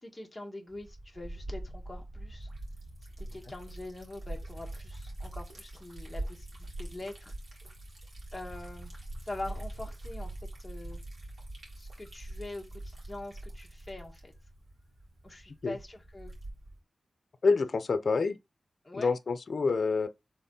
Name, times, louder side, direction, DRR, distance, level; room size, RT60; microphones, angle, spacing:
voice 1, 0.0-2.5 3.2-6.5 6.8-7.3 8.3-8.9 9.2-10.3 10.6-11.0 11.7-14.3 15.2-16.3 18.8-19.2, left 2 dB, 15° left, 1.6 m, -43 dB
Liquid, 0.7-16.8, right 1 dB, 60° right, 2.4 m, -43 dB
voice 2, 17.4-18.4 18.9-20.1, left 4 dB, 55° left, 0.6 m, -27 dB
4.7 x 3.6 x 5.5 m
wide cardioid pair, 125°, 0 cm